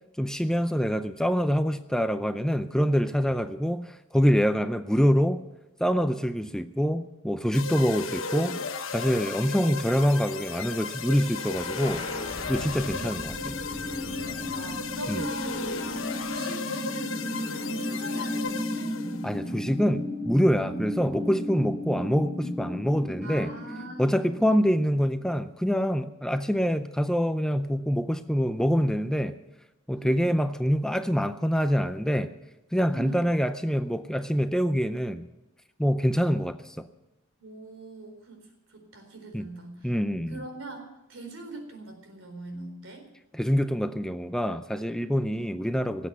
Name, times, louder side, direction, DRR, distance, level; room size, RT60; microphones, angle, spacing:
voice 1, 0.2-5.4 5.8-8.6 8.9-12.0 12.5-13.5 15.1-15.3 19.2-23.5 24.0-29.4 29.9-32.3 32.7-35.2 35.8-36.9 39.3-39.5 39.8-40.4 43.3-46.1, equal, 5° left, 10 dB, 0.5 m, -25 dB
sound 1, 7.5-19.3, left 5 dB, 75° left, 1.0 m, -35 dB
sound 2, 11.2-25.2, left 1 dB, 30° left, 2.4 m, -35 dB
voice 2, 12.8-13.3 13.9-18.9 20.6-20.8 23.2-24.6 29.9-30.2 32.9-33.2 37.4-39.9 40.3-43.1 45.1-45.4, right 2 dB, 80° right, 4 dB, 4.2 m, -42 dB
18.0 x 8.2 x 9.2 m, 0.97 s
head